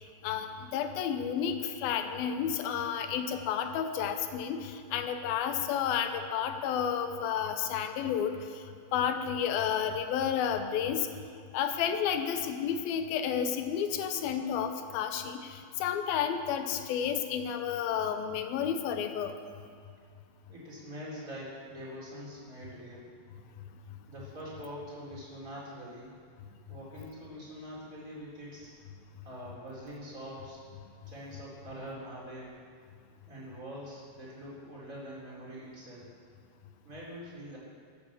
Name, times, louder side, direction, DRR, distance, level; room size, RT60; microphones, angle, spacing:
voice 1, 0.2-8.3 8.9-11.1 11.5-19.3, left 8 dB, 90° left, 7 dB, 2.8 m, -31 dB
voice 2, 20.5-23.1 24.1-26.2 26.7-28.7 29.2-30.6 31.1-32.5 33.3-36.2 36.8-37.6, equal, 20° right, -6 dB, 4.0 m, -44 dB
13.0 x 10.0 x 7.4 m, 2.2 s
omnidirectional pair, 4.1 m